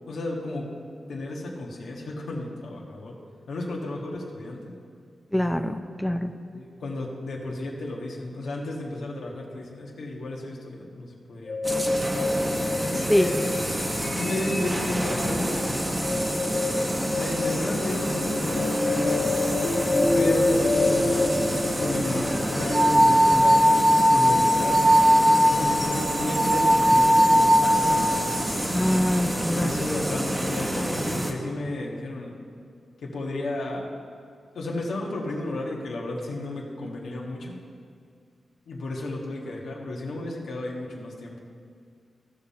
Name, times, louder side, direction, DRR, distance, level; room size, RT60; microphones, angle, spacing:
voice 1, 0.1-0.7 1.1-3.2 3.5-4.7 6.5-12.0 12.9-13.4 14.1-15.8 17.0-19.4 20.1-21.3 21.8-23.6 24.1-24.9 25.5-28.2 29.5-32.4 33.0-33.9 34.5-37.5 38.7-41.4, left 2 dB, 85° left, -2 dB, 1.6 m, -33 dB
voice 2, 5.3-6.3 13.1-13.3 28.7-29.7, left 1 dB, 5° left, 6 dB, 0.6 m, -23 dB
sound 1, 11.5-22.9, left 2 dB, 45° left, 1.8 m, -27 dB
sound 2, 11.6-31.3, equal, 15° right, 1.3 m, -28 dB
sound 3, 22.6-28.4, equal, 45° right, 1.2 m, -19 dB
16.0 x 5.7 x 4.3 m, 2.3 s
cardioid pair, 60°, 0 cm